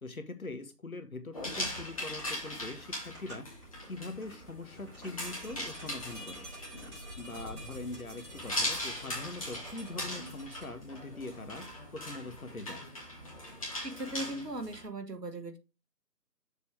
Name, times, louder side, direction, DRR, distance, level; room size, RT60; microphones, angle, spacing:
voice 1, 0.0-3.5 3.9-6.5 6.9-12.9, left 2 dB, 60° left, 9 dB, 1.3 m, -43 dB
sound 1, 1.3-14.8, left 1 dB, 20° left, 2.0 m, -40 dB
sound 2, 1.4-7.1, right 1 dB, 5° right, 3.1 m, -53 dB
sound 3, 5.2-10.7, equal, 45° right, 4.5 m, -48 dB
voice 2, 13.8-15.6, right 1 dB, 75° right, 7 dB, 1.6 m, -38 dB
6.8 x 6.2 x 3.3 m, 0.27 s
figure-of-eight pair, 165°, 48 cm